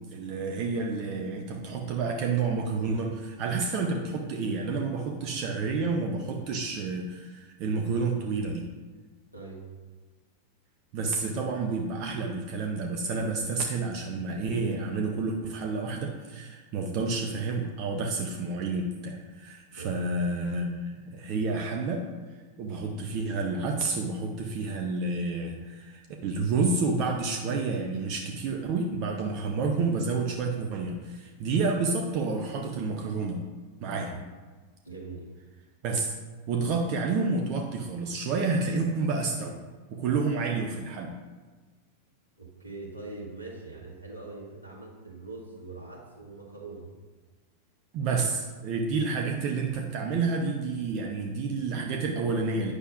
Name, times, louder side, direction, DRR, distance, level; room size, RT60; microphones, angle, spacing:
voice 1, 0.1-8.7 10.9-22.0 22.6-33.4 33.8-34.2 35.8-36.2 36.5-39.6 39.9-41.2 47.9-52.7, right 4 dB, 40° right, 2 dB, 0.7 m, -29 dB
voice 2, 9.3-9.6 19.7-20.0 34.1-34.2 34.8-35.3 42.4-46.9, right 3 dB, 85° right, -4 dB, 1.7 m, -42 dB
9.1 x 6.5 x 2.6 m, 1.3 s
figure-of-eight pair, 90°, 0 cm